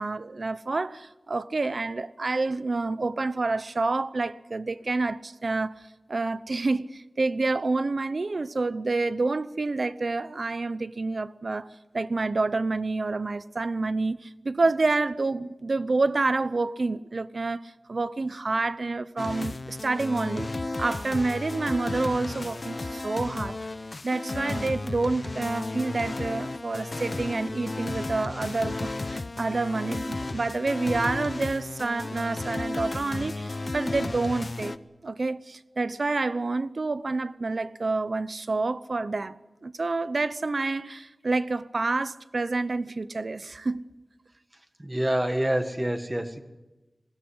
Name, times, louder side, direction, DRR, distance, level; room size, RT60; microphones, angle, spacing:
voice 1, 0.0-5.7 6.1-11.7 11.9-20.5 20.8-23.6 24.0-34.7 35.0-43.9, right 3 dB, 55° right, 0.8 m, -28 dB
sound 1, 19.2-34.8, left 2 dB, 50° left, 0.8 m, -33 dB
voice 2, 44.8-46.4, right 1 dB, 20° right, 1.7 m, -27 dB
20.5 x 16.5 x 9.6 m
wide cardioid pair, 85°, 0 cm